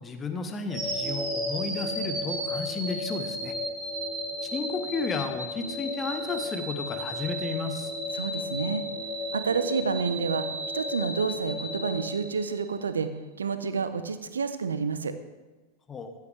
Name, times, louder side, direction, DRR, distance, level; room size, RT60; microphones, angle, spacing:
voice 1, 0.0-3.5 4.4-7.9 15.9-16.1, left 4 dB, 20° left, 7 dB, 1.0 m, -33 dB
sound 1, 0.7-12.8, left 1 dB, 20° right, 3.5 m, -33 dB
voice 2, 8.1-8.8 9.3-10.5 10.7-13.1 13.4-15.2, right 5 dB, 70° right, 11 dB, 0.7 m, -29 dB
14.5 x 8.3 x 3.3 m, 1.2 s
figure-of-eight pair, 90°, 0 cm